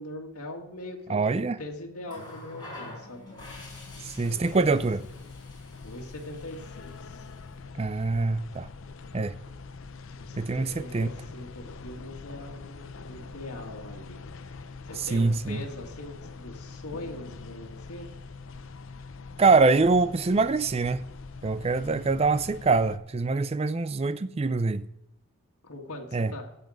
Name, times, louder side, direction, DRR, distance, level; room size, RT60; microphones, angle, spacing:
voice 1, 0.0-3.3 3.9-5.1 5.8-7.3 10.1-14.2 14.8-18.1 25.6-26.5, left 1 dB, 85° left, 2.0 m, -42 dB
voice 2, 1.1-1.6 4.0-5.0 7.8-8.7 9.1-9.4 10.4-11.1 15.1-15.6 19.4-21.0 21.4-24.9 26.1-26.3, right 3 dB, 25° right, 0.4 m, -24 dB
Water tap faucet, 2.0-7.6 8.8-9.0, left 1 dB, 20° left, 5.2 m, -47 dB
sound 1, 3.4-23.0, left 4 dB, 60° left, 0.6 m, -44 dB
16.5 x 5.7 x 6.4 m
head